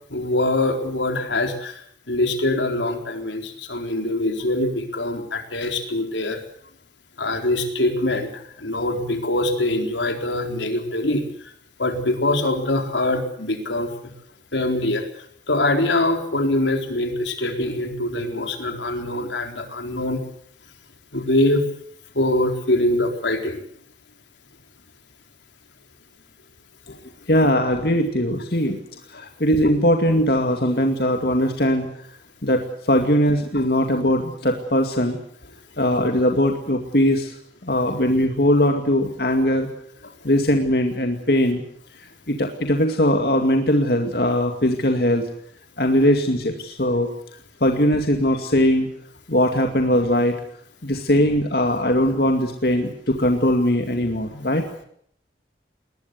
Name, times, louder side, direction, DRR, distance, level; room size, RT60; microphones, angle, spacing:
voice 1, 0.1-6.4 7.2-8.3 8.6-11.3 11.8-14.1 14.5-20.2 21.1-21.7 22.1-23.6 26.9-27.0, left 1 dB, 85° left, 5 dB, 4.1 m, -23 dB
voice 2, 27.3-28.8 29.1-31.9 32.4-35.2 35.8-37.4 37.6-39.7 40.2-41.6 42.3-45.2 45.8-47.1 47.6-48.9 49.3-50.3 50.8-54.6, equal, 55° left, 4 dB, 2.3 m, -20 dB
21.0 x 20.5 x 8.2 m, 0.66 s
head